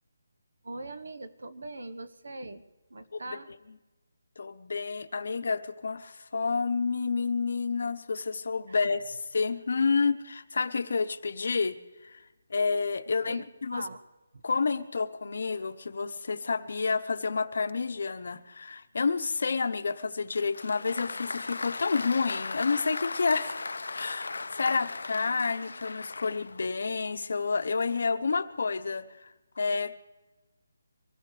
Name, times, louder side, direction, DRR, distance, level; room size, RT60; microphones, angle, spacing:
voice 1, 0.6-2.6 2.9-3.5 8.7-8.8 13.2-13.4 13.7-14.0 14.3-14.4, right 2 dB, 80° right, 12 dB, 1.3 m, -41 dB
voice 2, 4.4-9.0 9.3-12.2 12.5-13.9 14.4-30.0, left 4 dB, 60° left, 11 dB, 1.0 m, -29 dB
Applause, 20.3-26.7, left 3 dB, 80° left, 0.4 m, -37 dB
24.5 x 16.0 x 3.4 m, 1.1 s
hypercardioid pair, 170°, 0 cm